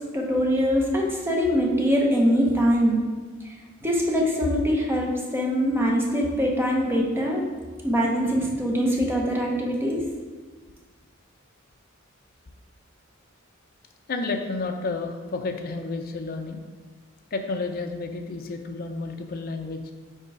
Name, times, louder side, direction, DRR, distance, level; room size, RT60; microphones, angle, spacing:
voice 1, 0.0-3.0 3.8-7.4 7.8-10.0, equal, 10° right, -2 dB, 0.9 m, -23 dB
voice 2, 14.1-16.6 17.3-19.9, left 3 dB, 45° left, 4 dB, 0.6 m, -31 dB
5.4 x 3.9 x 4.7 m, 1.4 s
head